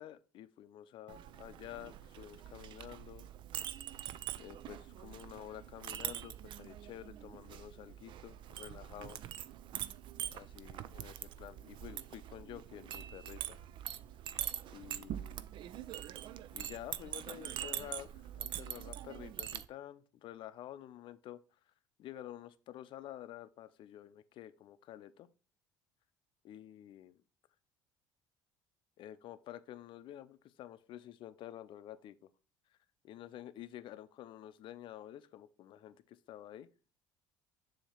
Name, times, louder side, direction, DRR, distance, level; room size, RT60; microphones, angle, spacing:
voice 1, 0.0-3.2 4.4-9.2 10.3-13.6 14.7-15.4 16.5-21.4 22.0-25.3 26.4-27.2 29.0-32.2 33.0-36.7, left 12 dB, 55° left, 0.5 m, -50 dB
Chink clink, 1.1-19.6, right 11 dB, 55° right, 0.5 m, -44 dB
7.0 x 2.9 x 5.6 m
hypercardioid pair, 70°, 10 cm